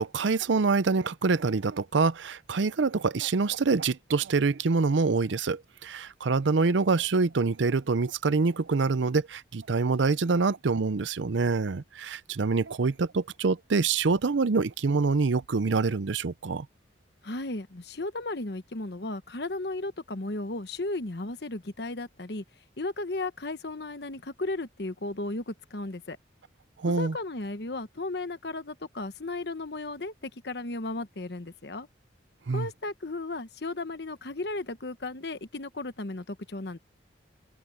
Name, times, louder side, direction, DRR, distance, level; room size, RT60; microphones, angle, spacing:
voice 1, 0.0-16.7 26.8-27.1 32.5-32.7, right 4 dB, 80° right, 0.6 m, -26 dB
voice 2, 17.2-22.4 22.8-26.2 26.9-31.9 32.5-36.8, left 2 dB, 60° left, 1.1 m, -35 dB
open air
head